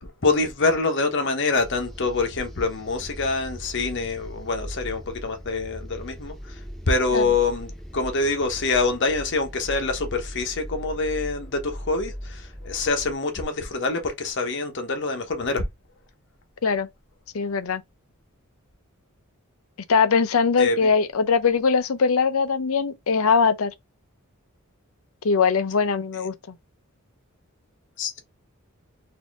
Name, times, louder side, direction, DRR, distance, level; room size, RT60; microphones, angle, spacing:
voice 1, 0.0-6.6 6.9-15.6 20.6-20.9 28.0-28.2, left 3 dB, 60° left, 1.0 m, -25 dB
sound 1, 1.6-13.2, equal, ahead, 0.7 m, -39 dB
voice 2, 17.3-17.8 19.9-23.7 25.2-26.3, left 5 dB, 75° left, 0.6 m, -21 dB
4.2 x 2.7 x 3.4 m
head